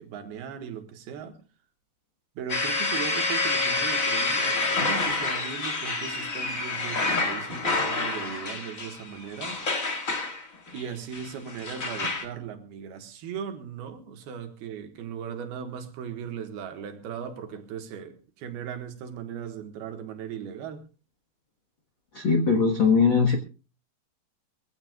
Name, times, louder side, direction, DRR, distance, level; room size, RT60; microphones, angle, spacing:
voice 1, 0.0-1.4 2.4-9.7 10.7-20.8, right 8 dB, 75° right, 3.4 m, -38 dB
sound 1, 2.5-12.2, left 3 dB, 35° left, 1.3 m, -28 dB
voice 2, 22.1-23.3, left 5 dB, 75° left, 1.0 m, -20 dB
23.5 x 16.0 x 2.4 m
omnidirectional pair, 4.7 m